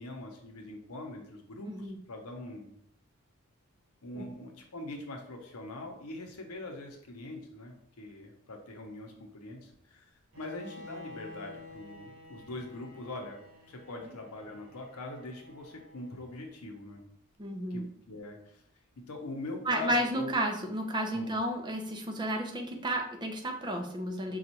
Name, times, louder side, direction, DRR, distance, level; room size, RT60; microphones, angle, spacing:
voice 1, 0.0-2.7 4.0-13.4 13.7-17.0 17.7-18.6 19.1-20.4 21.1-21.3, left 2 dB, 85° left, 2 dB, 0.7 m, -43 dB
Bowed string instrument, 10.3-16.4, left 2 dB, 65° right, 0.9 m, -51 dB
voice 2, 17.4-17.8 19.6-24.4, right 1 dB, 20° right, 2 dB, 0.5 m, -32 dB
5.2 x 2.4 x 2.9 m, 0.68 s
head